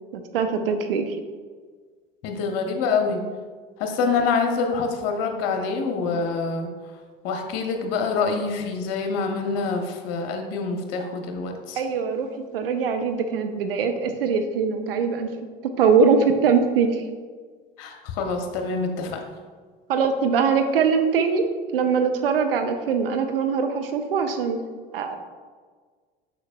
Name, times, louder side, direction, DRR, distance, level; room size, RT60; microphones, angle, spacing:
voice 1, 0.1-1.2 11.8-12.3 12.5-15.3 15.8-17.0 19.9-21.5 21.7-24.6 24.9-25.2, right 5 dB, 75° right, 7 dB, 0.6 m, -22 dB
voice 2, 2.2-3.2 3.8-6.7 7.2-11.8 17.8-19.2, left 4 dB, 55° left, 4 dB, 0.9 m, -26 dB
6.4 x 6.3 x 2.5 m, 1.5 s
figure-of-eight pair, 60°, 29 cm